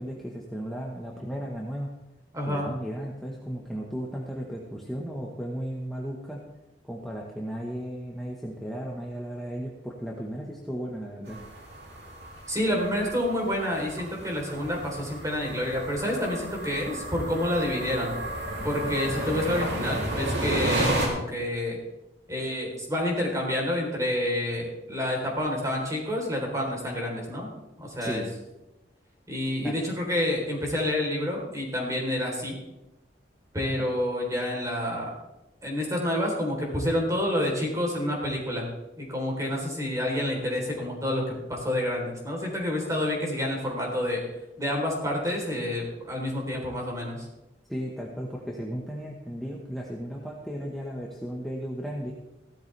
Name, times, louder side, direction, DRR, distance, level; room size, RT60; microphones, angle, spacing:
voice 1, 0.0-1.9 2.5-6.4 6.8-11.4 14.2-14.3 28.0-28.3 29.6-29.7 47.7-52.1, equal, ahead, -3 dB, 1.2 m, -35 dB
voice 2, 2.3-2.7 12.5-18.1 18.6-21.8 22.3-27.5 27.8-28.2 29.3-32.6 33.5-35.1 35.6-38.7 39.0-44.2 44.6-47.3, left 1 dB, 20° right, -1 dB, 3.7 m, -28 dB
sound 1, 11.3-21.1, right 1 dB, 75° right, 3.0 m, -32 dB
15.5 x 13.0 x 3.4 m, 0.96 s
head